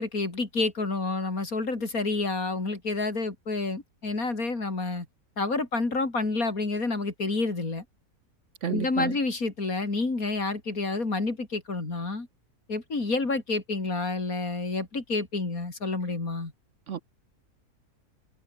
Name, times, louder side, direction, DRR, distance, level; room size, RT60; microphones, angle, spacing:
voice 1, 0.0-5.1 5.4-7.8 8.7-12.3 12.7-16.5, left 3 dB, 65° left, 4.3 m, -29 dB
voice 2, 8.6-9.2 16.9-17.0, right 8 dB, 55° right, 1.2 m, -31 dB
omnidirectional pair, 1.6 m